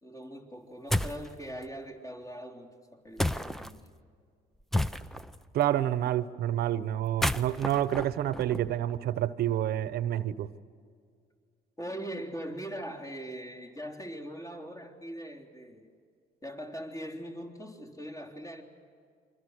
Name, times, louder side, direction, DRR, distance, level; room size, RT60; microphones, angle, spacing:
voice 1, 0.0-3.9 11.8-15.9 16.4-18.6, equal, 20° left, 3.5 m, -41 dB
sound 1, 0.9-1.3 3.2-3.7 4.7-5.4 7.0-9.0, left 1 dB, ahead, 0.7 m, -31 dB
voice 2, 5.5-10.5, right 12 dB, 70° right, 1.1 m, -28 dB
29.0 x 25.0 x 6.5 m
cardioid pair, 110°, 17 cm